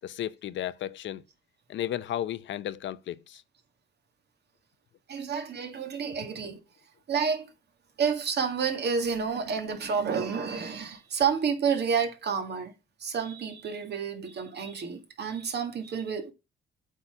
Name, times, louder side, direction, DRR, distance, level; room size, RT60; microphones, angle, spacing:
voice 1, 0.0-1.2 1.7-3.4, left 11 dB, 70° left, 0.7 m, -34 dB
voice 2, 5.1-6.6 7.1-7.5 8.0-12.7 13.0-16.3, right 6 dB, 60° right, 2.0 m, -29 dB
8.3 x 4.1 x 5.9 m
cardioid pair, 90°, 20 cm